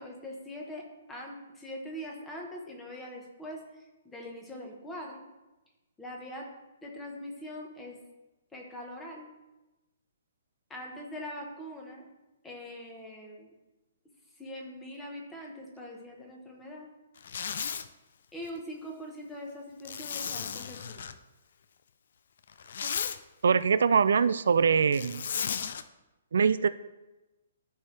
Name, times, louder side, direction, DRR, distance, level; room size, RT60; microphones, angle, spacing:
voice 1, 0.0-5.2 6.0-6.5 6.8-8.0 8.5-9.3 10.7-12.1 12.4-13.5 14.4-16.9 18.3-21.0, equal, 5° left, 0 dB, 1.1 m, -42 dB
Zipper (clothing), 17.2-17.9 19.8-21.2 22.5-23.2 24.9-25.8, left 7 dB, 60° left, 0.5 m, -34 dB
voice 2, 23.4-25.2 26.3-26.7, right 6 dB, 75° right, 14 dB, 0.3 m, -23 dB
13.5 x 4.5 x 3.3 m, 1.1 s
hypercardioid pair, 170°, 0 cm